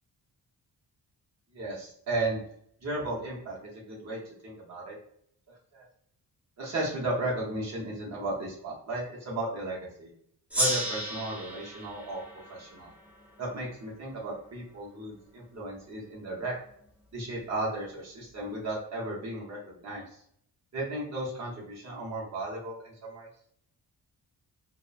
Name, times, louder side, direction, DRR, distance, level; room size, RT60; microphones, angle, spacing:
voice 1, 1.5-2.4 2.8-5.0 5.5-5.8 6.6-10.1 10.6-12.9 13.4-16.5 17.1-20.2 20.7-23.3, right 2 dB, 40° right, -4 dB, 0.8 m, -35 dB
Gong, 10.5-13.7, equal, 5° right, 0.6 m, -33 dB
2.9 x 2.1 x 2.3 m, 0.68 s
wide cardioid pair, 140°, 39 cm